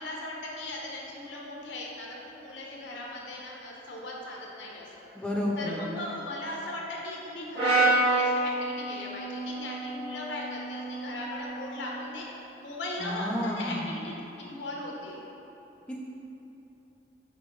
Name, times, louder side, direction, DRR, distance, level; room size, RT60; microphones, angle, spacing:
voice 1, 0.0-5.1 5.6-12.2 12.6-15.2, left 1 dB, 90° left, -3 dB, 0.7 m, -38 dB
voice 2, 5.1-5.8 13.0-14.0 15.9-16.0, left 1 dB, 5° left, -4 dB, 0.3 m, -31 dB
Brass instrument, 7.5-11.8, right 2 dB, 60° right, 1.4 m, -28 dB
4.5 x 3.0 x 3.1 m, 3.0 s
head